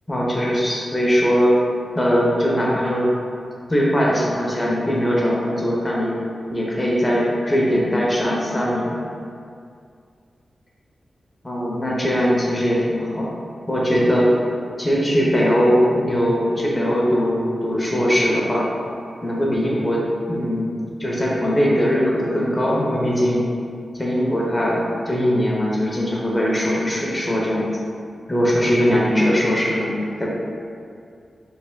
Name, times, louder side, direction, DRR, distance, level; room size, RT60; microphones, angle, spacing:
voice 1, 0.1-1.5 1.9-3.1 3.7-6.1 6.5-9.0 11.4-13.3 13.7-14.3 14.8-18.7 19.2-23.4 23.9-27.7 28.3-30.3, equal, 20° left, -4 dB, 0.8 m, -20 dB
4.0 x 3.4 x 2.2 m, 2.3 s
cardioid pair, 65°, 0 cm